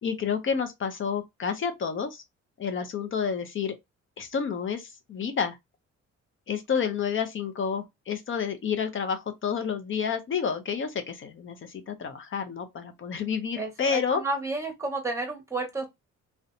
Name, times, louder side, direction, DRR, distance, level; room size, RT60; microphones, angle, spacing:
voice 1, 0.0-2.2 2.6-3.8 4.2-5.6 6.5-14.2, left 6 dB, 40° left, 0.5 m, -30 dB
voice 2, 13.6-15.9, right 3 dB, 10° right, 1.1 m, -31 dB
2.6 x 2.1 x 2.5 m
cardioid pair, 90°, 30 cm